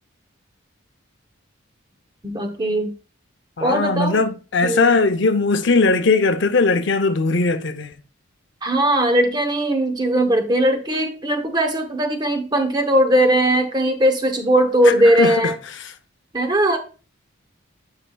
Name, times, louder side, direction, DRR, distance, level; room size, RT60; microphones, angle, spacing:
voice 1, 2.2-2.9 3.6-4.2 4.6-5.0 8.6-15.5 16.3-16.8, right 1 dB, 20° right, 0.8 m, -19 dB
voice 2, 3.6-8.0 14.8-15.9, left 3 dB, 60° left, 0.7 m, -19 dB
10.0 x 5.7 x 2.3 m
head